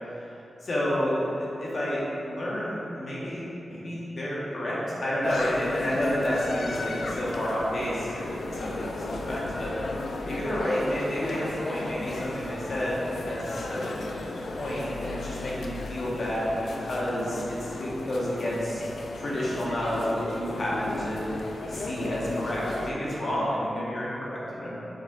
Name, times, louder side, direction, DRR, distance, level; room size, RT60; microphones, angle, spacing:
voice 1, 0.6-9.7 10.2-18.8 19.2-21.2 21.7-24.7, equal, 60° left, -7 dB, 1.1 m, -30 dB
sound 1, 5.2-22.9, left 2 dB, 85° left, 0.3 m, -35 dB
4.9 x 4.2 x 2.4 m, 2.9 s
wide cardioid pair, 85°, 0 cm